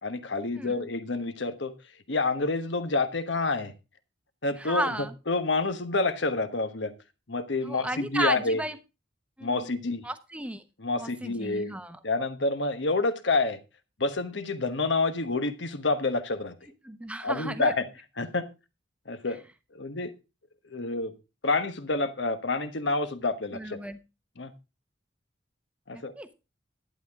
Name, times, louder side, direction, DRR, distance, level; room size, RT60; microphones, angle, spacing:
voice 1, 0.0-1.7 2.1-3.7 4.4-4.9 5.3-6.9 7.3-8.6 9.4-10.0 10.8-11.7 12.0-13.6 14.0-16.5 17.2-17.9 18.2-18.5 19.1-19.4 19.7-20.1 20.7-21.1 21.4-23.8 24.4-24.5 25.9-26.1, left 3 dB, 70° left, 1.2 m, -28 dB
voice 2, 0.5-0.9 4.6-5.1 7.6-8.8 9.4-9.7 10.0-10.6 10.9-12.0 16.8-17.7 19.3-19.4 23.5-24.0 25.9-26.3, right 1 dB, 5° right, 0.9 m, -34 dB
11.5 x 9.7 x 3.6 m
head